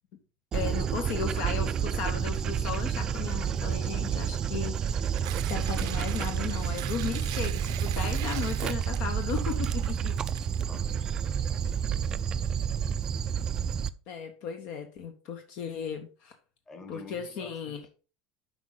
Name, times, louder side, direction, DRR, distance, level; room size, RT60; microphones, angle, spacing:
voice 1, 0.5-5.1 5.4-10.2 14.1-16.3 16.9-17.9, left 7 dB, 55° left, 6 dB, 1.0 m, -36 dB
Dog, 0.5-13.9, right 8 dB, 30° right, 0.3 m, -30 dB
Tearing, 4.8-11.0, right 16 dB, 80° right, 0.6 m, -43 dB
voice 2, 10.6-11.9 16.7-17.9, left 2 dB, 20° left, 5 dB, 1.5 m, -49 dB
8.1 x 5.0 x 3.9 m, 0.36 s
supercardioid pair, 145°, 2 cm